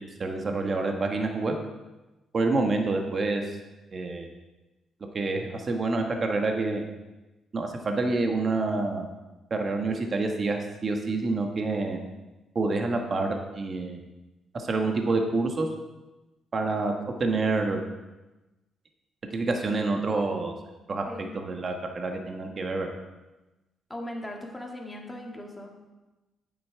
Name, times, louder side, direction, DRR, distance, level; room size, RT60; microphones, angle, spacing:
voice 1, 0.0-1.6 2.3-3.6 3.9-4.3 5.1-6.8 7.5-9.1 9.5-12.0 12.5-14.0 14.5-15.7 16.5-17.8 19.3-20.5 20.9-22.9, right 3 dB, 40° right, 3 dB, 1.3 m, -27 dB
voice 2, 21.1-21.4 23.9-25.8, left 1 dB, 10° left, 0 dB, 2.0 m, -39 dB
8.9 x 7.8 x 4.7 m, 1.1 s
cardioid pair, 90°, 0 cm